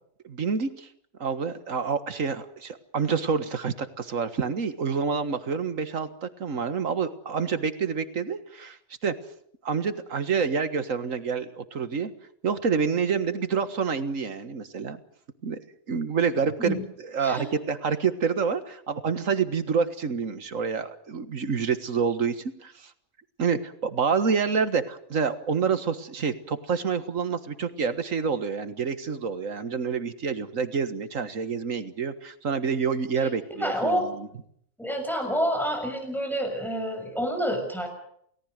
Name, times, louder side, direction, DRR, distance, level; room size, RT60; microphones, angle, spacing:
voice 1, 0.2-0.9 1.2-8.8 9.0-9.1 9.6-12.1 12.4-15.0 15.4-15.6 15.9-22.9 23.4-34.3, right 5 dB, 80° right, 11 dB, 2.0 m, -28 dB
voice 2, 33.6-34.0 34.8-37.9, equal, ahead, 4 dB, 6.8 m, -28 dB
29.0 x 18.5 x 6.6 m, 0.68 s
omnidirectional pair, 1.4 m